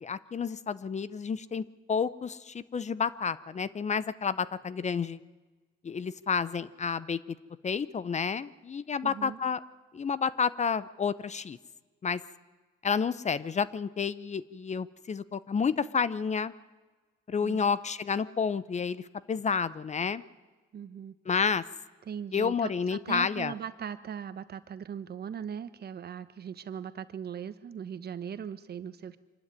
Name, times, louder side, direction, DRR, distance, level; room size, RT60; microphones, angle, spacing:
voice 1, 0.0-5.2 5.8-7.2 7.6-9.6 9.9-11.6 12.0-12.2 12.8-16.5 17.3-20.2 21.3-21.6 22.3-23.5, left 6 dB, 35° left, 17 dB, 0.7 m, -30 dB
voice 2, 9.0-9.4 17.4-17.6 20.7-21.2 22.1-29.2, right 8 dB, 55° right, 12 dB, 1.2 m, -39 dB
24.5 x 12.5 x 9.8 m, 1.3 s
cardioid pair, 90°, 20 cm